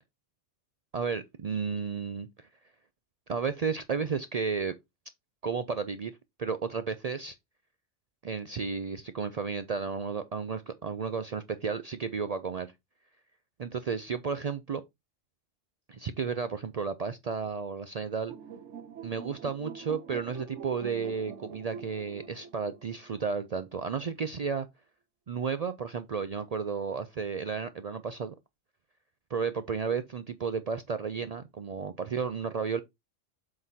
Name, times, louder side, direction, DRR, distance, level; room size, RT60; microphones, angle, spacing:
voice 1, 0.9-2.5 3.3-4.7 5.4-6.1 6.4-7.4 8.2-12.7 13.6-14.8 15.9-18.3 19.0-24.7 25.3-28.3 29.3-32.8, right 5 dB, 60° right, 0.4 m, -33 dB
sound 1, 18.3-23.7, right 7 dB, 90° right, 1.2 m, -45 dB
7.6 x 5.9 x 2.7 m
omnidirectional pair, 1.2 m